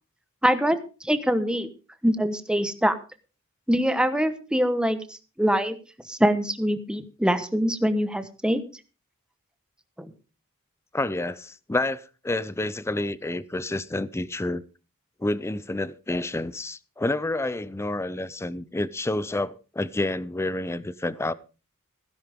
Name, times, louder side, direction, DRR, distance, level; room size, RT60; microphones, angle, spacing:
voice 1, 0.4-1.7 2.0-3.0 3.7-5.8 6.1-8.6 10.0-10.1, equal, 5° right, 1.0 m, -24 dB
voice 2, 10.9-14.6 15.2-21.3, left 2 dB, 10° left, 0.5 m, -29 dB
16.0 x 10.5 x 3.6 m
head